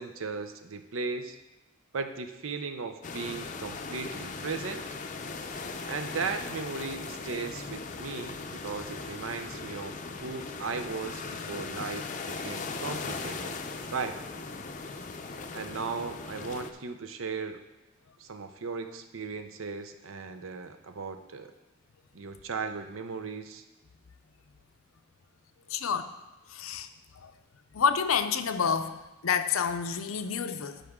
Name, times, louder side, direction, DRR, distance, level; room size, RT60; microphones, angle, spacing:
voice 1, 0.0-1.4 1.9-4.9 5.9-12.1 12.4-13.6 13.9-14.2 15.5-17.6 18.2-21.5 22.1-23.6, right 4 dB, 80° right, 8 dB, 0.7 m, -36 dB
sound 1, 3.0-16.7, left 4 dB, 40° left, 0.5 m, -39 dB
voice 2, 25.7-26.1 26.5-26.9 27.2-27.3 27.7-30.8, left 6 dB, 90° left, 10 dB, 0.6 m, -29 dB
12.5 x 5.1 x 3.7 m, 1.1 s
head